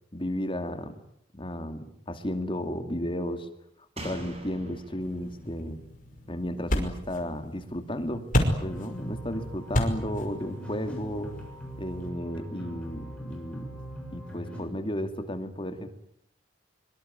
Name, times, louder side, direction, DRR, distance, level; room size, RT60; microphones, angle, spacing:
voice 1, 0.1-0.9 1.3-3.5 4.0-5.8 6.3-8.3 8.6-11.3 11.8-13.8 14.1-15.9, equal, 25° left, 8 dB, 2.5 m, -33 dB
Slam, 4.0-7.4 7.7-7.8, right 1 dB, 30° right, 7.4 m, -45 dB
sound 1, 5.0-12.1, equal, 45° left, 5.6 m, -32 dB
sound 2, 8.5-14.6, equal, 5° left, 7.8 m, -41 dB
24.5 x 24.5 x 9.6 m, 0.70 s
head